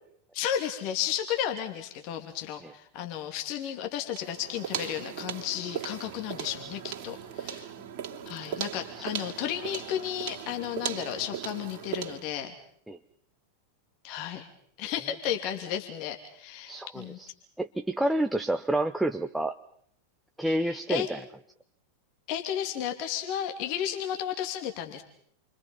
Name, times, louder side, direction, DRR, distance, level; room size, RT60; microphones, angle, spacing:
voice 1, 0.3-7.7 8.3-12.5 14.0-14.5 14.8-17.2 20.4-21.1 22.3-25.0, left 10 dB, 45° left, 5 dB, 2.9 m, -33 dB
sound 1, 4.1-12.3, right 8 dB, 45° right, 2.8 m, -38 dB
voice 2, 16.7-17.3 17.6-19.6 20.4-21.2, right 1 dB, 5° right, 6 dB, 0.9 m, -29 dB
29.0 x 24.5 x 5.6 m, 0.66 s
figure-of-eight pair, 90°, 0 cm